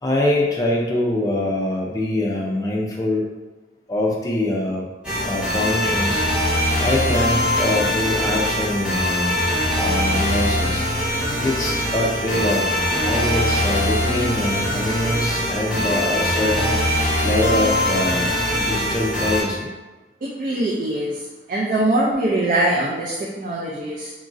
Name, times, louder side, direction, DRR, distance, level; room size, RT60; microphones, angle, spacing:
voice 1, 0.0-3.3 3.9-4.8 5.2-6.2 6.8-9.4 9.7-10.8 11.4-18.3 18.6-19.7, left 1 dB, 20° left, -2 dB, 0.4 m, -24 dB
sound 1, 5.0-19.4, left 1 dB, 5° right, 0.9 m, -22 dB
voice 2, 20.2-24.1, right 1 dB, 45° right, -3 dB, 0.3 m, -23 dB
3.0 x 2.5 x 2.5 m, 1.2 s
head